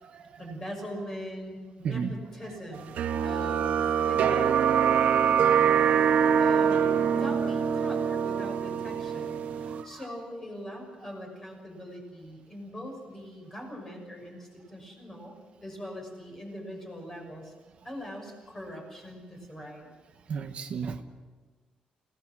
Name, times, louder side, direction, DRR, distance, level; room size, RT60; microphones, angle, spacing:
voice 1, 0.4-2.9 3.2-4.6 6.4-17.5 17.8-19.9, equal, 20° left, 1 dB, 6.0 m, -41 dB
sound 1, 3.0-9.8, right 7 dB, 75° right, 1.2 m, -24 dB
voice 2, 9.7-10.0 20.3-21.0, right 6 dB, 50° right, 6 dB, 1.1 m, -34 dB
29.5 x 17.5 x 6.2 m, 1.3 s
wide cardioid pair, 170°, 3 cm